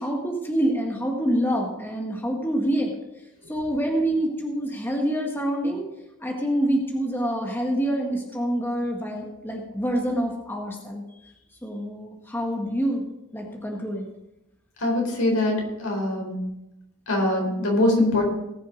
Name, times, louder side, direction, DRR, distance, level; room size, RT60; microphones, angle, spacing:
voice 1, 0.0-2.9 3.5-5.9 6.2-11.0 11.6-13.0 13.3-14.1, right 1 dB, 10° left, 0 dB, 1.6 m, -26 dB
voice 2, 14.8-16.4 17.1-18.2, left 1 dB, 80° left, 0 dB, 4.4 m, -23 dB
18.5 x 6.7 x 5.1 m, 0.92 s
head